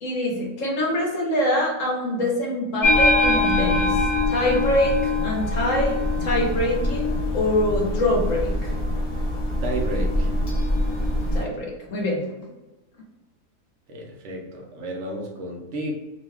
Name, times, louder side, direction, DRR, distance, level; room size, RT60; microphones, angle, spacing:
voice 1, 0.0-8.7 11.3-12.2, left 1 dB, 60° left, -2 dB, 1.3 m, -24 dB
sound 1, 2.8-11.4, left 1 dB, 30° left, 0.7 m, -23 dB
voice 2, 9.6-10.3 13.9-15.9, right 1 dB, 60° right, 0 dB, 0.9 m, -32 dB
3.1 x 2.2 x 3.4 m, 1.1 s
omnidirectional pair, 1.6 m